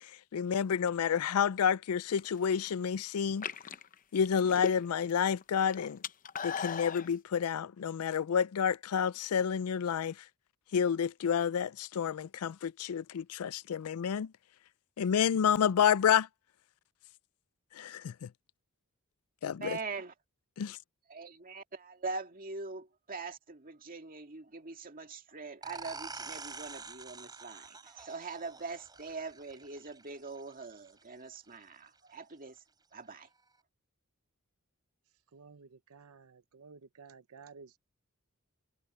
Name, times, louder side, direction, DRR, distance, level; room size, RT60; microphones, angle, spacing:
voice 1, 0.0-3.5 4.1-6.0 6.4-10.2 10.7-14.3 15.0-16.3 17.7-18.3 19.4-19.8 20.6-20.8, left 7 dB, 75° left, 0.4 m, -29 dB
sound 1, 2.2-2.7 3.3-5.1 5.4-7.1, left 6 dB, 35° left, 0.7 m, -38 dB
voice 2, 19.6-20.1 21.1-32.6 32.9-33.3, right 4 dB, 40° right, 2.2 m, -43 dB
sound 2, 25.6-31.0, right 4 dB, 20° right, 3.4 m, -47 dB
voice 3, 35.3-37.8, right 5 dB, 70° right, 0.7 m, -54 dB
head